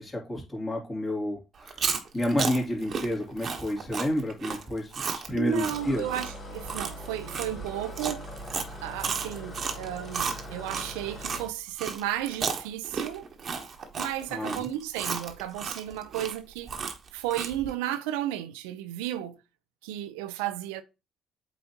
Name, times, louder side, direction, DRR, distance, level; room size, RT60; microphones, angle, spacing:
voice 1, 0.0-1.8 2.1-6.0 14.3-14.7, left 1 dB, 30° left, 2.8 m, -30 dB
Chewing mastication, 1.6-11.4 11.8-17.7, right 6 dB, 50° right, 1.2 m, -33 dB
voice 2, 5.4-8.3 8.8-13.3 14.0-16.7 17.1-19.4 19.8-20.8, right 12 dB, 80° right, 0.6 m, -33 dB
sound 1, 5.7-11.5, left 1 dB, 50° left, 3.0 m, -42 dB
8.2 x 4.1 x 2.9 m
hypercardioid pair, 55°, 0 cm